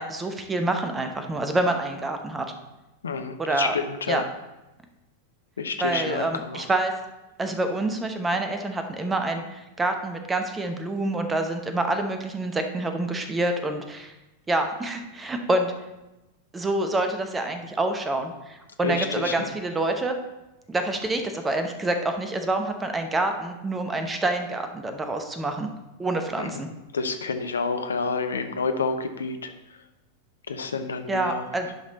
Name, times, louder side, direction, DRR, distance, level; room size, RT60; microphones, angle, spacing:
voice 1, 0.0-2.5 3.4-3.8 4.1-4.2 5.8-6.9 7.4-14.1 14.5-15.7 16.5-20.2 20.7-25.7 26.0-26.7 31.1-31.7, right 2 dB, 15° right, 6 dB, 0.9 m, -27 dB
voice 2, 3.0-4.2 5.6-6.6 18.8-19.5 26.4-26.5 26.9-29.5 30.5-31.4, left 4 dB, 70° left, 7 dB, 0.7 m, -29 dB
11.0 x 5.3 x 4.0 m, 1.0 s
figure-of-eight pair, 90°, 0 cm